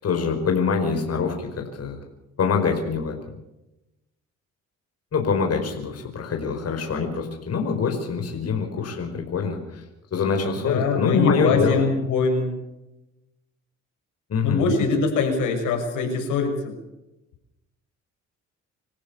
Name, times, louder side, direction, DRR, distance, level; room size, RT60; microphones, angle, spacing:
voice 1, 0.0-2.0 2.4-3.1 5.1-9.8 10.1-11.8 14.3-14.7, left 5 dB, 55° left, 3 dB, 5.0 m, -24 dB
voice 2, 10.6-12.6 14.4-16.7, left 4 dB, 90° left, 4 dB, 6.6 m, -23 dB
26.5 x 15.0 x 7.1 m, 0.91 s
cardioid pair, 90°, 30 cm